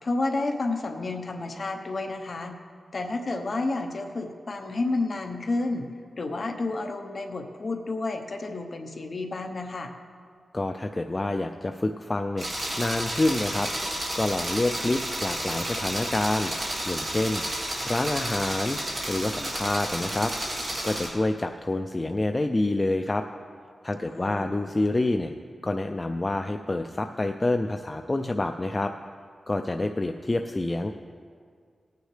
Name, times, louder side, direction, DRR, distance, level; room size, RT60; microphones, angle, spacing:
voice 1, 0.0-2.5 2.9-5.9 6.2-9.9 24.1-24.5, left 2 dB, 45° left, 3 dB, 0.9 m, -30 dB
voice 2, 10.5-13.7 14.2-17.4 17.8-18.8 19.1-20.3 20.8-23.2 23.8-25.3 25.6-28.9 29.5-30.9, left 2 dB, 20° left, 6 dB, 0.3 m, -27 dB
sound 1, 12.4-21.1, right 1 dB, 35° right, 2.0 m, -31 dB
18.5 x 9.3 x 3.3 m, 2.1 s
wide cardioid pair, 170°, 0 cm